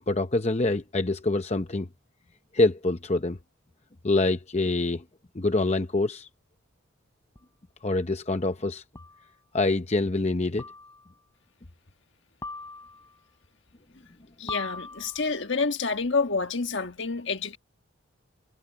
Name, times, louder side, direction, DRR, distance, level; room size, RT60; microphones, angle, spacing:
voice 1, 0.1-1.9 2.5-3.4 4.0-5.0 5.3-6.3 7.8-8.8 9.5-10.6, left 2 dB, 30° left, 0.7 m, -25 dB
sound 1, 7.4-7.5 9.0-9.3 10.6-11.2 12.4-13.2 14.5-15.4, left 3 dB, 15° left, 3.4 m, -40 dB
voice 2, 14.4-17.6, left 4 dB, 60° left, 1.5 m, -28 dB
head